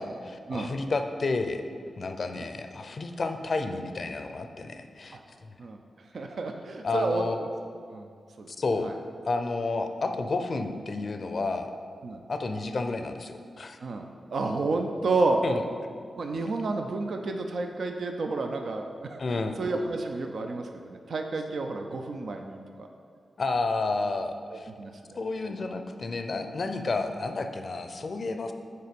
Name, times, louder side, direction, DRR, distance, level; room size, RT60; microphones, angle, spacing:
voice 1, 0.0-1.6 2.0-5.2 6.8-7.4 8.5-8.9 9.3-11.7 12.3-13.8 15.4-15.6 19.2-19.6 23.4-24.7 25.2-28.5, left 3 dB, 60° left, 7 dB, 0.5 m, -31 dB
voice 2, 6.1-7.5 7.9-8.1 8.4-8.5 8.8-8.9 12.0-12.2 13.8-15.4 16.2-22.9 24.8-24.9 25.4-25.6, right 3 dB, 70° right, 4 dB, 0.5 m, -30 dB
6.6 x 4.2 x 5.2 m, 2.2 s
supercardioid pair, 40°, 0 cm